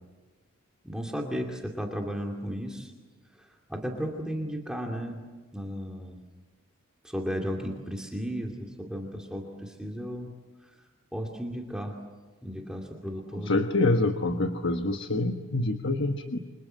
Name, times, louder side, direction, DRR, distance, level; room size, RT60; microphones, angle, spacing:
voice 1, 0.8-2.9 3.4-5.2 5.5-6.2 7.0-10.3 11.1-12.0 12.4-13.6, equal, 5° right, 0 dB, 2.6 m, -34 dB
voice 2, 13.3-16.4, left 2 dB, 55° left, 6 dB, 1.3 m, -26 dB
30.0 x 25.5 x 7.7 m, 1.3 s
head